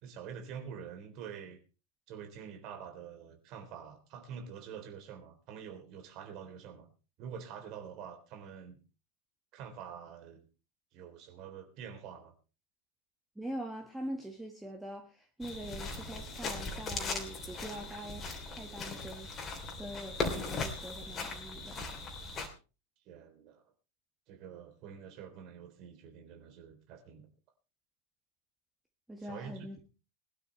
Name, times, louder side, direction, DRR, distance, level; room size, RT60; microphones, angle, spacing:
voice 1, 0.0-1.6 2.1-6.9 7.2-8.8 9.5-10.5 10.9-12.3 23.0-23.6 24.3-27.3 29.2-29.7, right 7 dB, 40° right, 6 dB, 3.4 m, -46 dB
voice 2, 13.3-19.4 19.7-21.8 29.1-29.8, right 1 dB, 5° right, 3 dB, 1.7 m, -43 dB
sound 1, 15.4-22.5, left 3 dB, 25° left, 3.1 m, -39 dB
21.0 x 12.0 x 3.3 m, 0.33 s
figure-of-eight pair, 90°, 0 cm